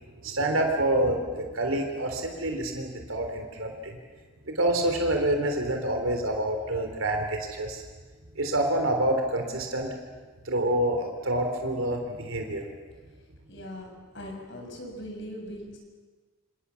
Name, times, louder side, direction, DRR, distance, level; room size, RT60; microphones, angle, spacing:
voice 1, 0.2-3.9 4.5-7.8 8.4-9.9 10.5-12.6, right 1 dB, 75° right, 4 dB, 3.7 m, -27 dB
voice 2, 13.5-13.9 14.1-15.8, equal, 60° left, 1 dB, 7.0 m, -40 dB
28.0 x 27.5 x 7.1 m, 1.4 s
head